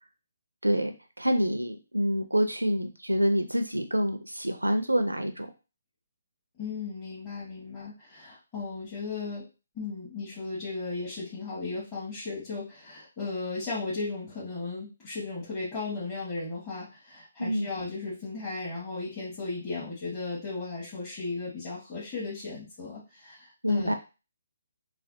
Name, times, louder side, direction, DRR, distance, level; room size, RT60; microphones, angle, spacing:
voice 1, 0.6-5.5 17.4-17.7 23.6-23.9, equal, 85° right, 7 dB, 0.4 m, -27 dB
voice 2, 6.6-9.4 9.7-23.9, left 3 dB, 25° left, -11 dB, 1.4 m, -36 dB
3.2 x 2.3 x 2.6 m, 0.30 s
figure-of-eight pair, 140°, 0 cm